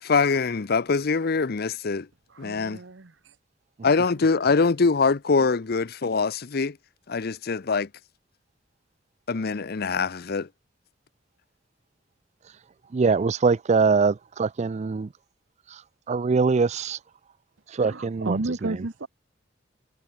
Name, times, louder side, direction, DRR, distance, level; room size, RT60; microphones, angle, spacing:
voice 1, 0.0-2.1 2.4-2.8 3.8-6.8 7.1-7.9 9.3-10.5, left 4 dB, 55° left, 0.6 m, -23 dB
voice 2, 2.3-3.1 17.8-19.1, right 2 dB, 70° right, 1.1 m, -32 dB
voice 3, 12.9-15.1 16.1-17.0 17.8-18.4, right 4 dB, 35° right, 0.4 m, -22 dB
head